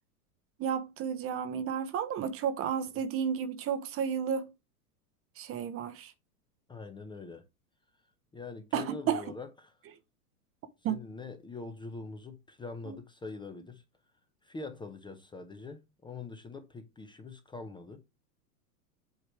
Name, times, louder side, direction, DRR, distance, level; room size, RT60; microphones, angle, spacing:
voice 1, 0.6-4.5 5.4-6.1 8.7-9.2 10.8-11.0 12.9-13.0, right 8 dB, 30° right, 0.8 m, -32 dB
voice 2, 6.7-7.4 8.3-9.7 10.9-13.8 14.4-18.0, left 3 dB, 10° left, 0.7 m, -44 dB
8.0 x 3.1 x 4.8 m
hypercardioid pair, 110°, 46 cm